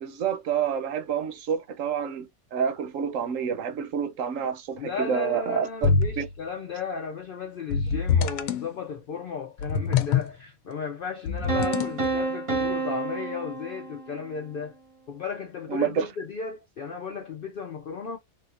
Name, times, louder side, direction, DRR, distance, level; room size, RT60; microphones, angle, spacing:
voice 1, 0.0-5.9 6.2-6.3 15.7-16.1, right 7 dB, 70° right, 1.0 m, -28 dB
voice 2, 4.8-14.7 15.1-18.2, left 5 dB, 70° left, 0.5 m, -35 dB
sound 1, 5.8-6.3 7.7-8.7 9.6-10.3 11.3-12.1, left 5 dB, 85° left, 1.1 m, -25 dB
sound 2, 11.5-14.4, right 3 dB, 30° right, 0.7 m, -29 dB
3.4 x 2.6 x 2.4 m
omnidirectional pair, 1.5 m